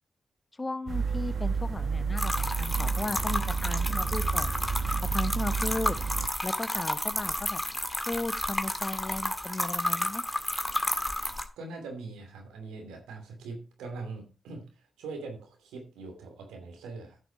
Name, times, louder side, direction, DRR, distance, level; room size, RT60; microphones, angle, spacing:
voice 1, 0.6-4.6 5.1-6.0 6.4-7.6 8.1-10.2, left 2 dB, 30° left, 14 dB, 0.9 m, -35 dB
sound 1, 0.9-6.3, right 5 dB, 60° right, 1.2 m, -30 dB
sound 2, 2.2-11.4, left 1 dB, 10° left, 1.9 m, -31 dB
voice 2, 11.6-17.2, right 3 dB, 90° right, 3 dB, 2.8 m, -42 dB
11.0 x 6.3 x 4.7 m, 0.33 s
supercardioid pair, 40°, 0 cm